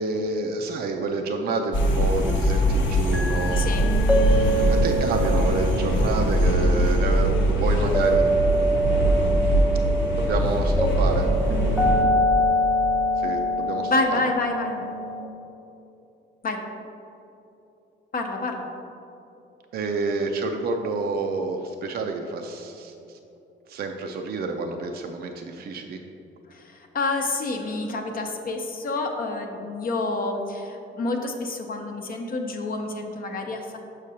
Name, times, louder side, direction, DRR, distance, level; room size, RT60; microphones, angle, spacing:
voice 1, 0.0-3.7 4.3-8.3 9.1-9.2 10.2-11.3 13.2-14.2 19.7-22.9 23.7-26.0, right 3 dB, 50° right, 3 dB, 0.5 m, -28 dB
sound 1, 1.7-12.0, equal, 75° left, 0.9 m, -22 dB
sound 2, 3.1-15.2, right 1 dB, ahead, 0.6 m, -25 dB
voice 2, 3.6-3.9 11.9-12.1 13.9-14.9 16.4-16.6 18.1-18.7 26.5-33.8, left 2 dB, 45° left, 3 dB, 0.7 m, -28 dB
6.5 x 6.2 x 2.8 m, 2.8 s
cardioid pair, 90°, 20 cm